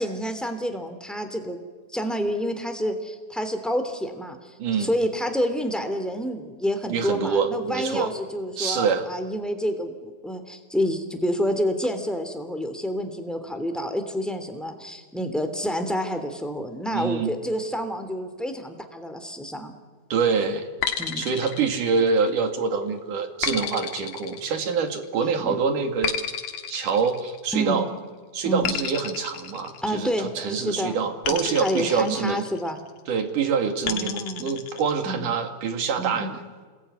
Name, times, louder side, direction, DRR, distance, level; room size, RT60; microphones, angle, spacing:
voice 1, 0.0-1.6 1.9-19.7 21.0-21.3 25.4-25.6 27.5-27.8 28.4-28.7 29.8-31.0 31.3-32.8 33.9-34.4 35.0-35.3 36.0-36.4, equal, ahead, 6 dB, 2.3 m, -28 dB
voice 2, 4.6-4.9 6.9-8.1 8.6-9.1 16.9-17.3 20.1-20.7 21.2-26.2 26.7-27.9 28.3-32.4 33.1-36.3, right 5 dB, 60° right, 6 dB, 3.6 m, -25 dB
sound 1, 20.8-22.5 23.4-25.1 26.0-27.8 28.6-30.4 31.2-32.8 33.9-34.9, left 8 dB, 55° left, 2.3 m, -32 dB
29.0 x 21.0 x 9.7 m, 1.4 s
omnidirectional pair, 4.3 m